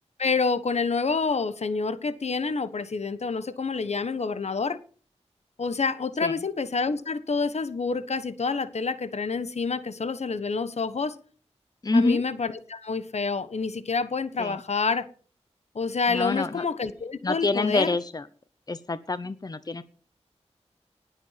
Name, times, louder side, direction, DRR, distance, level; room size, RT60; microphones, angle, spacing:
voice 1, 0.2-4.8 5.6-11.1 11.9-15.1 15.7-17.9, left 4 dB, 70° left, 1.2 m, -28 dB
voice 2, 11.8-12.2 14.4-14.6 16.1-16.6 17.2-18.3 18.7-19.8, left 3 dB, 35° left, 0.8 m, -26 dB
19.0 x 8.1 x 5.8 m
wide cardioid pair, 75°, 12 cm